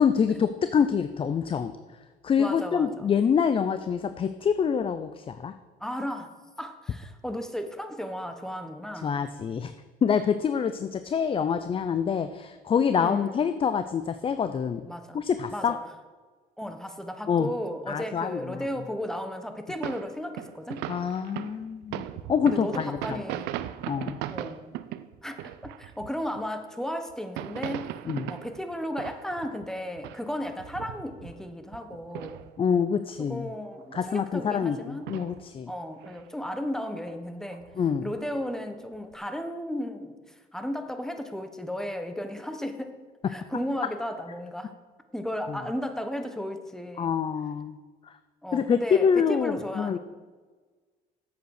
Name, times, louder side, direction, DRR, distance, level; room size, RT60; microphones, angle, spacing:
voice 1, 0.0-1.7 2.2-5.5 9.0-9.7 10.0-14.8 15.1-15.8 17.3-17.5 17.9-18.7 20.9-23.2 23.9-24.2 28.1-28.3 32.6-33.5 33.9-35.7 37.8-38.1 45.5-45.6 47.0-47.8 48.0-48.1 48.5-50.0, left 7 dB, 30° left, 11 dB, 0.5 m, -26 dB
voice 2, 2.4-3.1 5.8-9.2 13.0-13.4 14.8-15.2 15.5-15.8 16.6-20.9 22.5-23.6 24.3-24.7 25.2-27.9 28.3-32.4 33.2-35.1 35.7-37.6 38.0-43.0 43.3-44.7 45.1-47.1 48.4-50.0, equal, 5° left, 7 dB, 1.0 m, -34 dB
sound 1, 19.8-26.4 27.1-29.7 30.0-32.8 33.1-33.2 33.5-34.5 34.8-35.4 35.7-36.5 37.1-37.2 37.5-38.4 39.0-39.1, right 13 dB, 90° right, 0.5 m, -38 dB
8.1 x 8.0 x 6.4 m, 1.4 s
cardioid pair, 110°, 17 cm